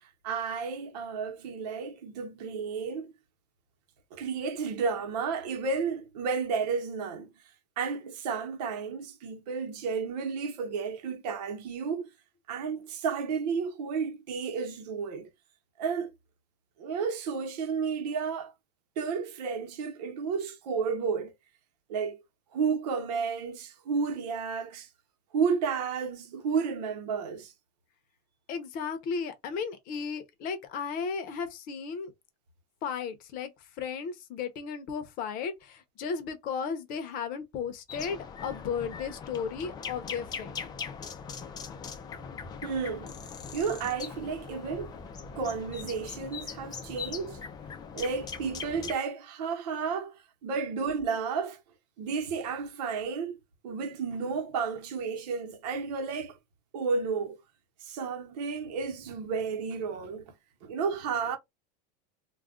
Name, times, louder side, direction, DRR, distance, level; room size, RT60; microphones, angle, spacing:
voice 1, 0.0-3.1 4.1-7.3 7.8-12.1 12.5-15.3 15.8-16.1 16.8-18.5 19.0-21.3 21.9-22.2 22.5-24.9 25.3-27.5 42.6-43.1 43.5-44.9 45.3-47.4 47.9-50.1 50.4-51.6 52.0-53.4 53.6-56.4 56.7-57.4 57.8-60.3 60.6-61.4, right 5 dB, 75° right, 1.0 m, -32 dB
voice 2, 28.5-32.1 32.8-33.5 33.8-40.6, left 6 dB, 40° left, 0.8 m, -35 dB
sound 1, 37.9-48.9, left 6 dB, 20° left, 0.5 m, -41 dB
2.4 x 2.3 x 3.6 m
supercardioid pair, 150°, 21 cm